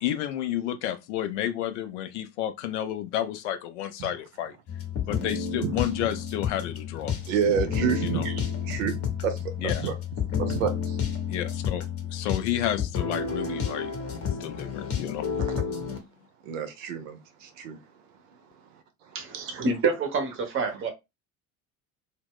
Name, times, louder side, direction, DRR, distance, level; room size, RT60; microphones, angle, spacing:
voice 1, 0.0-4.6 5.1-7.1 8.0-8.3 9.6-9.9 11.3-11.9 12.1-13.9 14.3-15.3, left 11 dB, 55° left, 0.5 m, -31 dB
sound 1, 4.7-16.0, left 7 dB, 30° left, 0.8 m, -30 dB
voice 2, 7.3-8.9 9.2-9.3 9.6-9.9 10.4-10.7 16.5-17.2 17.6-17.8 19.3-19.4, right 7 dB, 60° right, 0.7 m, -28 dB
voice 3, 19.1-20.9, right 4 dB, 30° right, 0.8 m, -27 dB
2.1 x 2.1 x 3.5 m
figure-of-eight pair, 65°, 44 cm